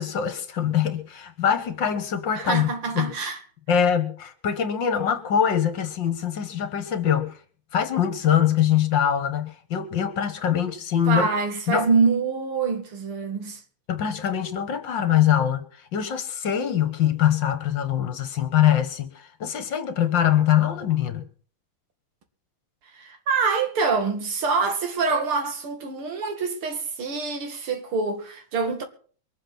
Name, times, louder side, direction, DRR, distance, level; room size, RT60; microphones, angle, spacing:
voice 1, 0.0-2.7 3.0-3.1 3.7-7.4 7.7-11.3 11.7-11.9 13.9-15.6 15.9-21.2, left 9 dB, 60° left, 2.0 m, -23 dB
voice 2, 2.4-3.4 11.1-13.6 22.9-28.8, right 4 dB, 85° right, 3.0 m, -25 dB
23.0 x 7.6 x 6.0 m
omnidirectional pair, 2.3 m